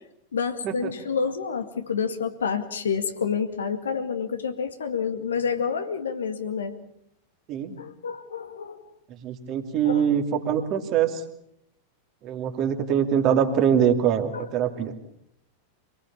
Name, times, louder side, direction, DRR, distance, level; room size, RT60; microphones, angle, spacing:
voice 1, 0.3-6.7 7.8-8.8 9.9-10.2 14.3-14.5, left 6 dB, 70° left, 7 dB, 2.1 m, -28 dB
voice 2, 9.2-11.1 12.2-14.9, right 8 dB, 35° right, 5 dB, 2.6 m, -23 dB
26.0 x 19.0 x 7.2 m, 0.76 s
figure-of-eight pair, 90°, 0 cm